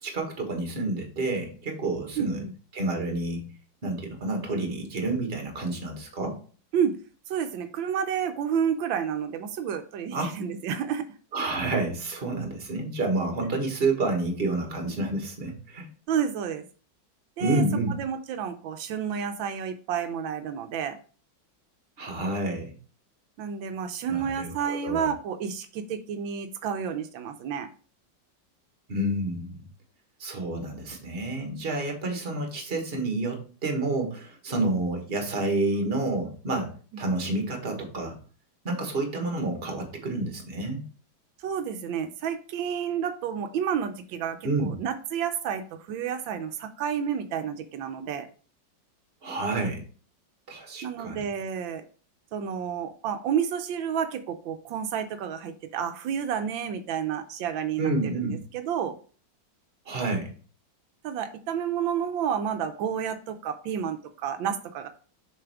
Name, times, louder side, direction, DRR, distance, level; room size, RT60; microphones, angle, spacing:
voice 1, 0.0-2.4 2.7-3.5 3.8-6.4 10.1-10.3 11.3-15.9 17.4-18.0 22.0-22.7 24.1-25.1 28.9-29.6 30.2-38.2 38.6-40.8 44.4-44.8 49.2-49.8 50.5-51.3 57.8-58.4 59.8-60.3, right 2 dB, 30° right, 3 dB, 1.6 m, -29 dB
voice 2, 2.2-2.5 6.7-6.9 7.3-11.0 16.1-16.6 17.4-17.6 18.0-21.0 23.4-27.7 41.4-48.3 50.8-51.8 52.3-59.0 61.0-64.9, right 8 dB, 85° right, 8 dB, 1.4 m, -30 dB
6.8 x 5.4 x 3.5 m, 0.39 s
omnidirectional pair, 2.1 m